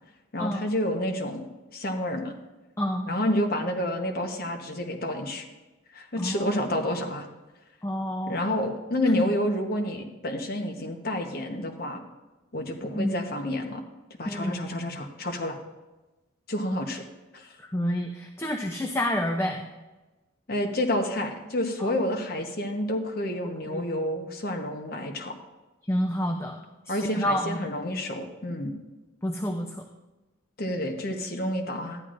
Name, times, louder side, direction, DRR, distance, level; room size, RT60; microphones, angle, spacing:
voice 1, 0.3-2.3 3.1-5.5 5.9-7.3 8.3-12.0 12.5-13.8 14.2-15.6 16.5-17.0 17.3-17.5 20.5-25.3 26.9-28.7 30.6-32.0, left 1 dB, 50° left, 3 dB, 1.0 m, -29 dB
voice 2, 2.8-3.1 6.2-6.5 7.8-8.4 9.1-9.3 12.9-13.2 14.3-14.6 17.6-19.7 21.8-22.0 23.7-23.8 25.9-27.6 29.2-29.8, equal, 15° left, 4 dB, 0.5 m, -29 dB
13.0 x 10.0 x 2.5 m, 1.1 s
head